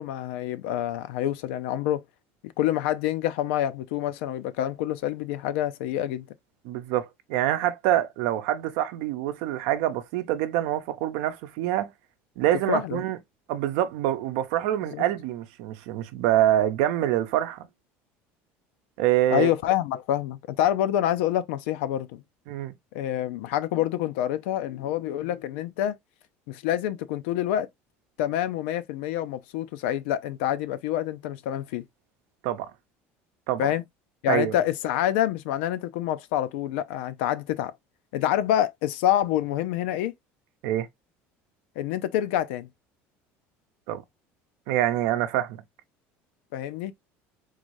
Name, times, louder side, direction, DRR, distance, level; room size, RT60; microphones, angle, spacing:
voice 1, 0.0-2.0 2.6-6.2 12.7-13.0 14.9-15.0 19.3-22.2 22.9-26.0 26.5-27.7 28.2-31.8 33.6-33.8 34.2-37.7 38.1-40.1 41.8-42.7 46.5-46.9, left 12 dB, 90° left, 0.5 m, -27 dB
voice 2, 6.6-11.9 12.4-13.2 13.5-17.7 19.0-19.5 22.5-22.7 32.4-32.7 33.5-33.7 34.3-34.5 40.6-40.9 43.9-44.0 44.7-45.6, right 12 dB, 80° right, 0.7 m, -25 dB
3.8 x 2.6 x 3.1 m
cardioid pair, 125°, 6 cm